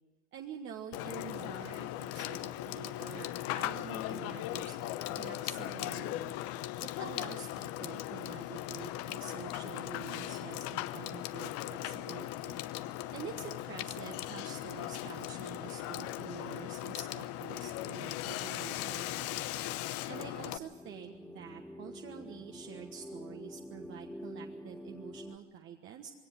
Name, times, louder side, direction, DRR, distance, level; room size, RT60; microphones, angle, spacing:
voice 1, 0.3-4.8 5.1-6.4 6.8-19.4 19.8-26.1, right 8 dB, 35° right, 3 dB, 1.4 m, -47 dB
Water / Water tap faucet / Sink (filling or washing), 0.9-20.6, left 14 dB, 40° left, 0.8 m, -38 dB
sound 1, 20.2-25.4, equal, ahead, 1.0 m, -47 dB
21.5 x 17.5 x 7.9 m, 1.3 s
hypercardioid pair, 95°, 35 cm